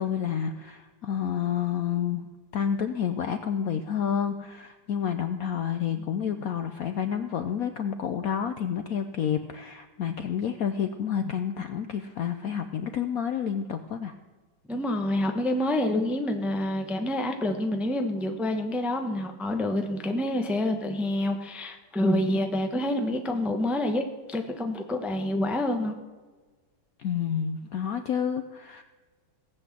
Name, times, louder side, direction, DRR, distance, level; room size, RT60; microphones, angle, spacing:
voice 1, 0.0-2.3 2.5-14.1 27.0-28.8, left 8 dB, 65° left, 8 dB, 0.9 m, -29 dB
voice 2, 14.7-25.9, left 1 dB, ahead, 4 dB, 0.7 m, -27 dB
17.5 x 8.1 x 7.4 m, 1.3 s
omnidirectional pair, 2.1 m